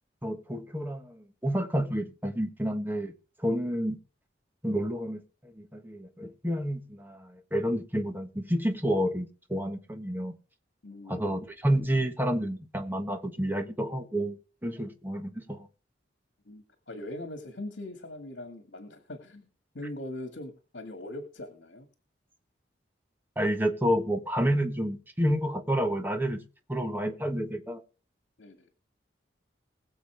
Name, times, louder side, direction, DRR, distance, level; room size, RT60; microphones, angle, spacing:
voice 1, 0.2-3.1 3.4-4.0 4.6-10.3 11.1-15.7 23.4-26.4 26.7-27.8, equal, 10° right, 1.3 m, -29 dB
voice 2, 10.8-11.5 16.5-19.5 19.7-21.9 28.4-28.7, left 1 dB, 70° left, 2.0 m, -41 dB
21.5 x 7.1 x 3.5 m
head